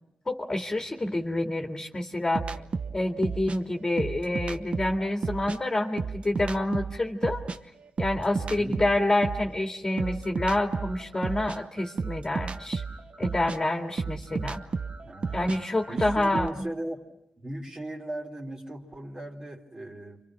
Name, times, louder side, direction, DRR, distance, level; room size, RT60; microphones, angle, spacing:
voice 1, 0.3-2.4 2.9-7.4 8.0-12.8 13.2-14.6 15.3-16.7, left 1 dB, 25° left, 2 dB, 2.2 m, -28 dB
sound 1, 2.3-5.6 5.9-9.5 10.0-16.5, right 4 dB, 45° right, 1.0 m, -33 dB
voice 2, 8.4-8.8 15.0-15.5 15.9-17.1 17.4-20.2, right 1 dB, 30° right, 2 dB, 3.4 m, -37 dB
29.5 x 25.5 x 6.2 m, 0.85 s
cardioid pair, 70°, 3 cm